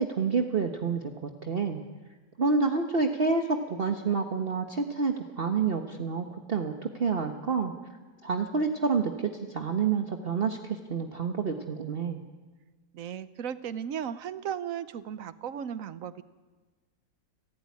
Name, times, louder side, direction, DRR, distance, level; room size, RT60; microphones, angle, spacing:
voice 1, 0.0-1.8 2.4-7.7 8.2-12.2, right 5 dB, 40° right, 5 dB, 1.3 m, -28 dB
voice 2, 12.9-16.2, right 8 dB, 60° right, 14 dB, 1.2 m, -36 dB
29.0 x 13.0 x 9.6 m, 1.3 s
omnidirectional pair, 1.7 m